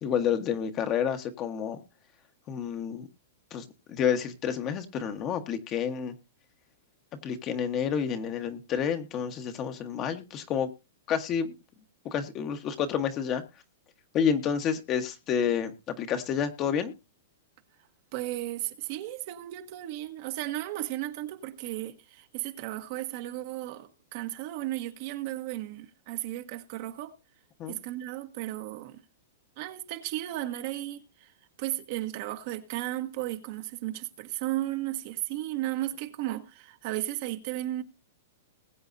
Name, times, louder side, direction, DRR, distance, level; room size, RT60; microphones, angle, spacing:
voice 1, 0.0-1.8 2.5-3.1 3.5-6.1 7.2-10.7 11.1-11.5 12.0-13.4 14.1-16.9 27.6-27.8, left 8 dB, 30° left, 1.3 m, -29 dB
voice 2, 18.1-27.2 27.7-29.0 29.6-31.3 31.6-37.8, right 15 dB, 50° right, 1.4 m, -34 dB
20.5 x 8.1 x 2.7 m
hypercardioid pair, 145°, 0 cm